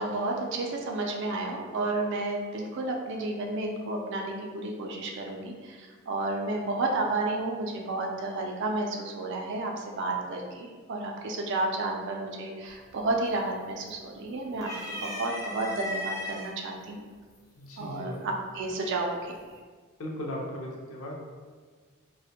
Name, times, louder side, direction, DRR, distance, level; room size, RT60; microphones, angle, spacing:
voice 1, 0.0-17.0 17.8-19.3, right 2 dB, 55° right, 1 dB, 0.3 m, -31 dB
sound 1, 12.7-13.1 13.4-14.1 14.5-16.5 17.3-17.4 18.7-19.1, left 1 dB, 15° left, 0.4 m, -37 dB
voice 2, 17.5-18.2 20.0-21.2, left 1 dB, 70° left, -1 dB, 0.5 m, -37 dB
2.4 x 2.0 x 2.7 m, 1.5 s
head